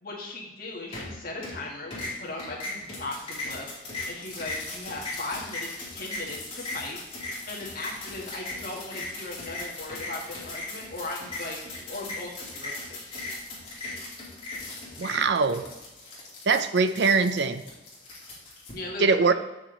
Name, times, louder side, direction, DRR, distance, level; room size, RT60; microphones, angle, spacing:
voice 1, 0.0-7.0 7.5-13.1 18.7-19.3, left 2 dB, 50° left, -3 dB, 1.8 m, -38 dB
sound 1, 0.9-1.6 1.9-18.7, left 2 dB, 30° left, 2.5 m, -38 dB
voice 2, 15.0-15.6 16.5-17.6 19.0-19.3, right 4 dB, 60° right, 11 dB, 0.5 m, -22 dB
7.9 x 6.2 x 3.9 m, 1.1 s
head